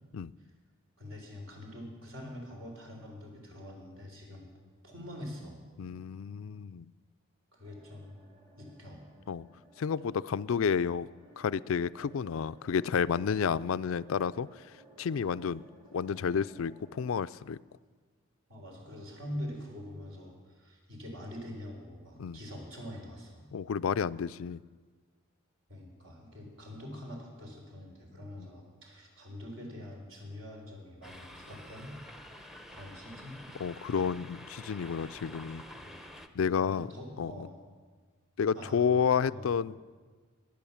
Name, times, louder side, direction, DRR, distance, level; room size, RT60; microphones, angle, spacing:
voice 1, 1.0-4.5 4.8-5.6 7.5-8.2 8.6-9.0 18.5-23.5 25.7-31.9 32.7-33.3 35.8-36.0 36.6-37.6 38.5-39.0 39.3-39.5, left 1 dB, 65° right, 1 dB, 4.0 m, -44 dB
voice 2, 5.8-6.9 9.3-9.5 9.8-11.1 11.4-14.5 15.0-15.6 15.9-17.6 22.2-22.4 23.5-24.6 28.4-28.5 33.6-35.6 36.4-36.9 37.2-37.3 38.4-39.8, left 6 dB, 75° left, 16 dB, 0.4 m, -30 dB
sound 1, 7.6-17.1, right 2 dB, 20° right, 1.6 m, -59 dB
sound 2, 31.0-36.3, left 1 dB, ahead, 0.7 m, -49 dB
21.0 x 8.9 x 7.2 m, 1.5 s
head